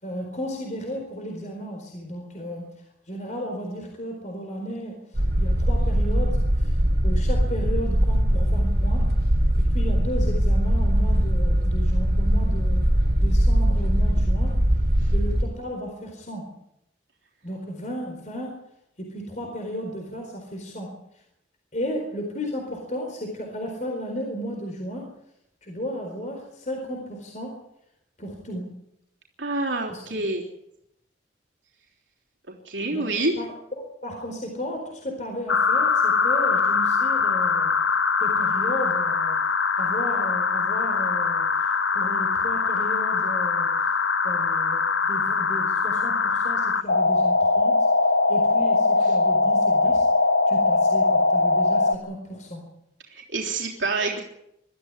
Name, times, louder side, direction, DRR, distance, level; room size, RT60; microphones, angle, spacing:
voice 1, 0.0-2.7 3.0-9.1 9.6-12.9 13.2-14.7 15.1-16.5 17.4-18.6 19.0-21.2 21.7-25.1 25.6-27.6 28.2-28.7 29.9-30.2 32.9-33.1 33.4-37.7 38.2-39.4 39.8-43.7 44.2-47.9 48.3-50.1 50.5-52.6, equal, 40° left, 2 dB, 4.3 m, -34 dB
sound 1, 5.1-15.4, equal, 55° right, 2.6 m, -21 dB
voice 2, 29.4-30.4 32.6-33.4 53.1-54.2, right 2 dB, 80° right, -1 dB, 3.4 m, -27 dB
sound 2, 35.5-51.9, left 4 dB, 85° left, 1.2 m, -22 dB
23.5 x 14.0 x 9.8 m, 0.81 s
head